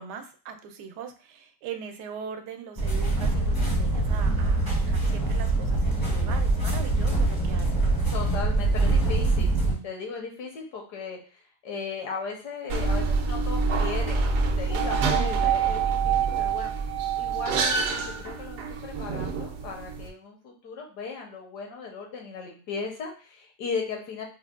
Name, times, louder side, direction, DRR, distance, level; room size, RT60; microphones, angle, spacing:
voice 1, 0.0-8.1 8.7-9.1 9.7-9.9 15.1-15.6, right 6 dB, 85° right, 7 dB, 1.2 m, -41 dB
sound 1, 2.8-9.7, right 2 dB, 25° left, 0.4 m, -24 dB
voice 2, 8.1-9.6 9.8-11.2 11.6-14.3 14.6-16.7 17.2-24.2, left 5 dB, 80° left, 1 dB, 1.5 m, -36 dB
sound 2, 12.7-20.1, right 5 dB, 65° right, 0.9 m, -26 dB
5.5 x 2.1 x 2.3 m, 0.36 s
omnidirectional pair, 1.7 m